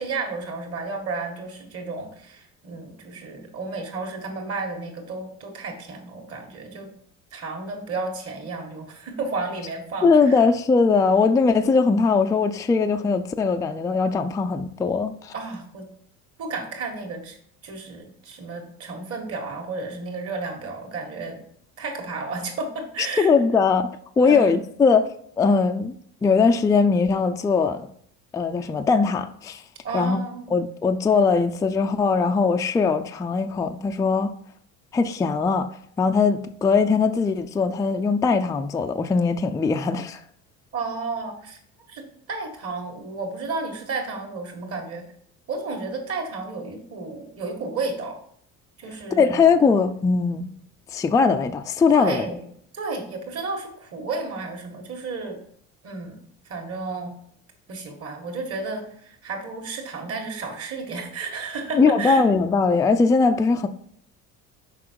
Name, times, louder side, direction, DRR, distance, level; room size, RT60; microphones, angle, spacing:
voice 1, 0.0-6.9 7.3-10.4 15.3-15.9 16.4-17.4 17.6-21.4 21.8-23.3 24.2-24.6 29.8-30.5 40.7-41.6 41.9-42.0 42.3-45.0 45.5-48.2 48.8-49.4 51.9-52.4 52.7-55.4 55.8-56.2 56.5-57.2 57.7-62.2, right 3 dB, 45° right, 1.9 m, -32 dB
voice 2, 10.0-15.3 23.2-23.9 24.2-25.1 25.4-25.9 26.2-27.8 28.3-29.6 29.9-30.2 30.5-34.3 34.9-35.7 36.0-40.2 49.2-50.5 50.9-52.3 61.8-63.7, left 4 dB, 10° left, 0.3 m, -20 dB
6.1 x 5.0 x 4.7 m
cardioid pair, 125°, 33 cm